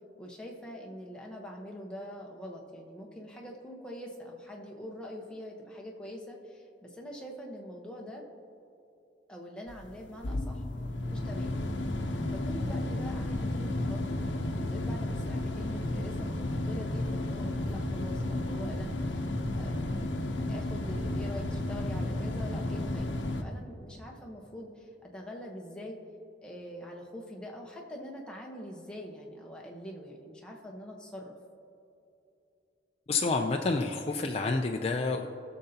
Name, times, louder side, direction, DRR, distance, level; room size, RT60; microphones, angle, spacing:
voice 1, 0.2-8.2 9.3-11.6 12.3-19.9 20.5-26.0 26.4-31.3, equal, 5° left, -1 dB, 1.0 m, -44 dB
sound 1, 9.7-23.4, left 1 dB, 75° left, 0.8 m, -33 dB
voice 2, 33.1-35.3, left 3 dB, 35° left, 2 dB, 0.4 m, -29 dB
18.5 x 6.6 x 2.8 m, 2.8 s
head